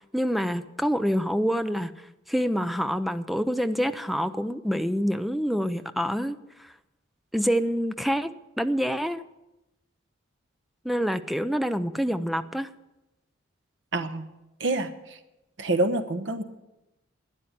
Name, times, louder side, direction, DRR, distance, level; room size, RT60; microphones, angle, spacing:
voice 1, 0.1-1.9 2.3-6.7 7.3-8.3 8.6-9.2 10.8-12.7, equal, ahead, 11 dB, 0.5 m, -26 dB
voice 2, 13.9-14.3 14.6-15.2 15.6-16.4, right 2 dB, 60° right, 9 dB, 1.2 m, -27 dB
13.0 x 9.9 x 9.7 m, 0.96 s
head